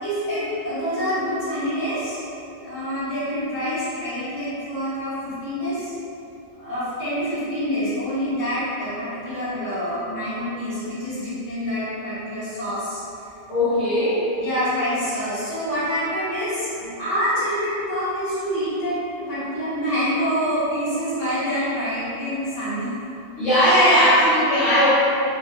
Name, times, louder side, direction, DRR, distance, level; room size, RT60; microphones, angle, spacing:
voice 1, 0.0-2.2 2.6-5.9 6.6-13.0 14.4-16.7 17.0-22.9, equal, 50° left, -13 dB, 1.5 m, -26 dB
voice 2, 13.5-14.2 23.4-24.9, equal, 70° left, -15 dB, 1.4 m, -17 dB
3.6 x 2.4 x 2.8 m, 3.0 s
omnidirectional pair, 1.3 m